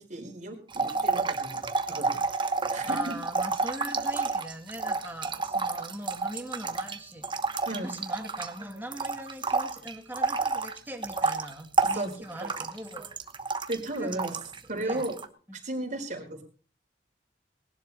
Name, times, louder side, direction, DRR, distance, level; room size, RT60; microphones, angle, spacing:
voice 1, 0.0-2.4 2.7-3.1 7.7-8.0 11.8-12.1 12.4-12.5 13.7-14.4 14.7-15.2 15.5-16.4, right 1 dB, 45° right, 2 dB, 4.4 m, -35 dB
sound 1, 0.7-8.6 8.9-14.6 14.9-15.3, right 3 dB, 30° right, 1.1 m, -29 dB
voice 2, 2.8-7.3 7.8-13.2 14.0-14.4 14.7-15.1 15.5-15.6, right 1 dB, 10° right, 4 dB, 2.5 m, -41 dB
19.5 x 11.5 x 4.2 m, 0.39 s
head